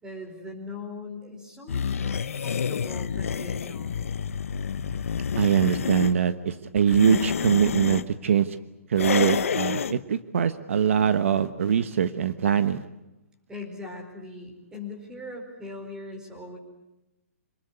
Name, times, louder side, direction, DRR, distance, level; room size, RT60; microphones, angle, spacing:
voice 1, 0.0-4.0 13.5-16.6, left 2 dB, 10° right, 3 dB, 4.6 m, -40 dB
sound 1, 1.7-6.1 6.8-8.1 9.0-10.0, left 7 dB, 70° left, 1.1 m, -28 dB
voice 2, 5.4-8.6 8.9-12.8, right 8 dB, 65° right, 12 dB, 1.2 m, -23 dB
26.5 x 20.0 x 9.7 m, 0.96 s
hypercardioid pair, 160°, 8 cm